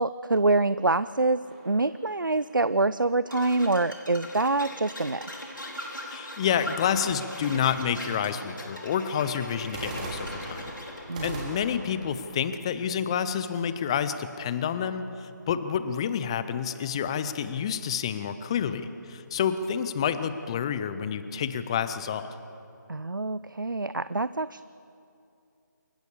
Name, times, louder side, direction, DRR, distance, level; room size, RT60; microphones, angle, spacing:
voice 1, 0.0-1.4 1.6-5.3 11.1-11.5 22.9-24.6, right 2 dB, 85° right, 16 dB, 0.5 m, -26 dB
sound 1, 1.4-2.9 9.6-13.6, right 2 dB, 25° right, 3.5 m, -41 dB
sound 2, 3.3-11.0, equal, 85° left, 4.7 m, -40 dB
voice 2, 6.1-10.7 11.2-22.3, left 8 dB, 15° left, 12 dB, 0.6 m, -29 dB
28.0 x 15.5 x 7.0 m, 2.7 s
figure-of-eight pair, 155°, 10 cm